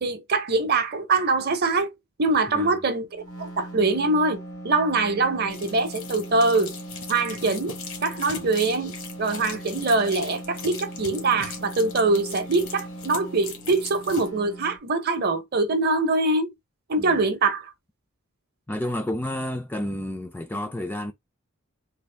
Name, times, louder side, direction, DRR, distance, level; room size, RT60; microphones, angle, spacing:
voice 1, 0.0-1.9 2.2-3.1 3.4-6.7 7.1-7.8 8.0-8.9 9.2-16.5 16.9-17.7, right 3 dB, 45° right, 0.7 m, -23 dB
sound 1, 3.1-14.8, right 1 dB, 85° left, 1.8 m, -39 dB
sound 2, 5.5-14.3, left 5 dB, 65° left, 1.1 m, -40 dB
voice 2, 18.7-21.1, left 1 dB, 10° left, 0.3 m, -31 dB
3.4 x 2.4 x 3.2 m
head